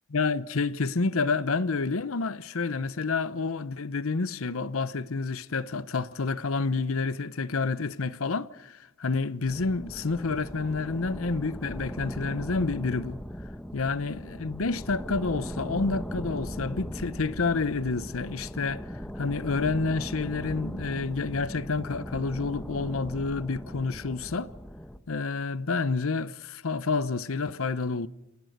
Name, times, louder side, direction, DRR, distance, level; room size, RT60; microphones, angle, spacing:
voice 1, 0.1-13.2 13.7-24.5 25.1-28.1, left 4 dB, 80° left, 0.8 m, -29 dB
sound 1, 9.5-25.0, equal, 5° left, 1.1 m, -39 dB
27.5 x 20.5 x 6.6 m
head